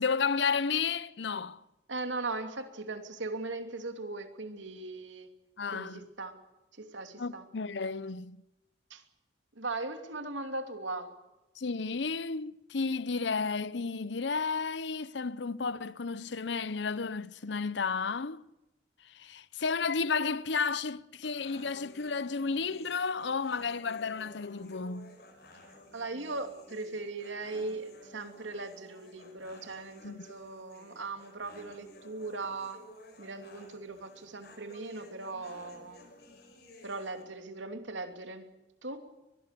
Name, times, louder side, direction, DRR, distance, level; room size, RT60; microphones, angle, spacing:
voice 1, 0.0-1.6 5.6-6.0 7.2-8.4 11.6-18.4 19.1-25.2 30.0-30.3, left 5 dB, 70° left, 0.7 m, -32 dB
voice 2, 1.9-5.3 5.7-6.4 6.8-7.4 8.9-9.0 9.5-11.1 25.9-32.8 33.2-36.1 36.8-38.5 38.8-39.1, right 3 dB, 80° right, 2.9 m, -39 dB
sound 1, 21.2-37.2, left 1 dB, 55° left, 5.0 m, -54 dB
23.0 x 22.5 x 6.8 m
head